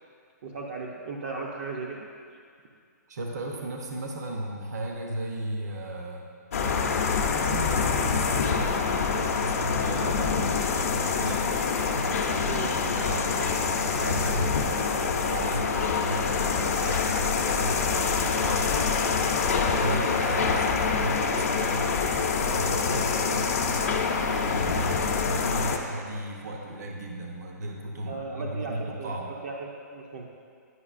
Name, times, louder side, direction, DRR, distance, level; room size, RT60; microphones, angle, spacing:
voice 1, 0.4-2.1 12.4-12.7 19.8-20.1 28.0-30.3, right 4 dB, 40° right, -2 dB, 0.5 m, -36 dB
voice 2, 3.1-6.3 7.3-11.5 11.9-18.8 19.4-22.0 22.4-29.3, right 1 dB, 65° right, 1 dB, 0.8 m, -35 dB
sound 1, 6.5-25.8, left 5 dB, 50° left, 0.6 m, -26 dB
9.6 x 5.3 x 2.5 m, 2.2 s
hypercardioid pair, 170°, 10 cm